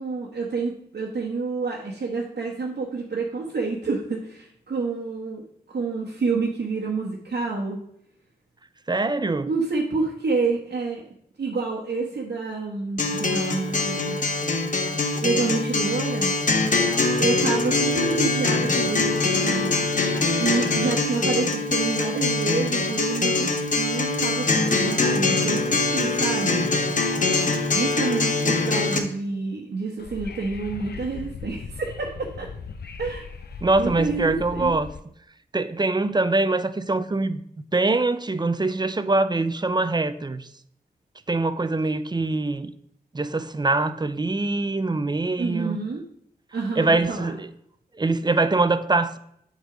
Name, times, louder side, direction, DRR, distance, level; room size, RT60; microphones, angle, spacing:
voice 1, 0.0-7.8 9.5-11.0 11.4-14.2 15.2-16.4 17.2-26.7 27.7-32.5 33.0-33.2 33.8-34.8 45.4-46.0 46.5-47.3, right 4 dB, 80° right, 1.1 m, -28 dB
voice 2, 8.9-9.5 33.6-34.9 35.5-37.4 37.7-40.5 41.3-42.7 43.1-45.8 46.7-47.5 47.9-49.2, right 3 dB, 25° right, 0.5 m, -23 dB
Acoustic guitar, 13.0-29.0, left 3 dB, 50° left, 0.9 m, -23 dB
Wind / Subway metro underground, 30.0-35.0, left 4 dB, 80° left, 0.6 m, -38 dB
7.8 x 4.0 x 5.0 m
cardioid pair, 60°, 17 cm